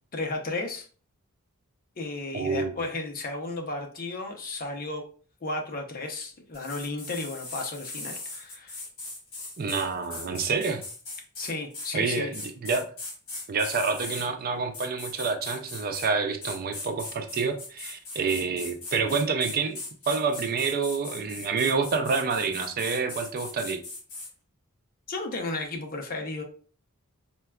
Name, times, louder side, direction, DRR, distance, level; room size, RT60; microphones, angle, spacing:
voice 1, 0.1-0.9 2.0-5.0 5.4-8.8 11.4-12.3 25.1-26.4, left 2 dB, 40° left, 3 dB, 0.6 m, -34 dB
voice 2, 2.3-2.8 9.6-10.8 11.9-12.8 13.5-19.8 20.1-23.8, right 4 dB, 40° right, 7 dB, 0.4 m, -28 dB
sound 1, 6.5-14.3 14.7-16.1 16.4-24.3, left 3 dB, 65° left, 1.6 m, -39 dB
4.5 x 2.2 x 2.2 m, 0.40 s
head